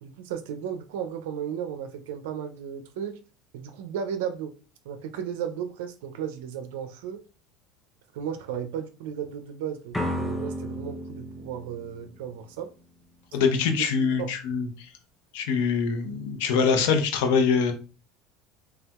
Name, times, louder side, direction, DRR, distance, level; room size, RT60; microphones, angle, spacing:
voice 1, 0.0-3.2 3.5-4.5 4.9-7.2 8.1-12.7 13.8-14.3, right 8 dB, 85° right, 0.4 m, -34 dB
sound 1, 9.9-12.8, equal, 5° left, 0.4 m, -33 dB
voice 2, 13.3-14.9 15.3-17.7, left 5 dB, 80° left, 0.6 m, -24 dB
3.3 x 2.7 x 2.3 m
supercardioid pair, 105°, 0 cm